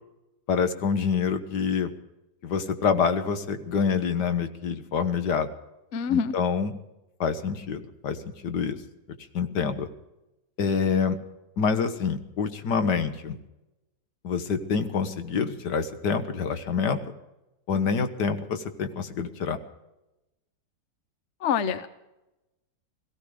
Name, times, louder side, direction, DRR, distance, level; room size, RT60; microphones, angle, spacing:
voice 1, 0.5-1.9 2.4-5.5 6.1-6.7 7.2-8.2 8.4-8.8 9.3-9.9 10.6-11.2 11.6-13.4 14.2-17.0 17.7-19.6, left 6 dB, 65° left, 9 dB, 1.8 m, -26 dB
voice 2, 5.9-6.3 21.4-21.9, left 7 dB, 50° left, 12 dB, 1.0 m, -25 dB
17.5 x 16.0 x 5.0 m, 0.96 s
omnidirectional pair, 1.9 m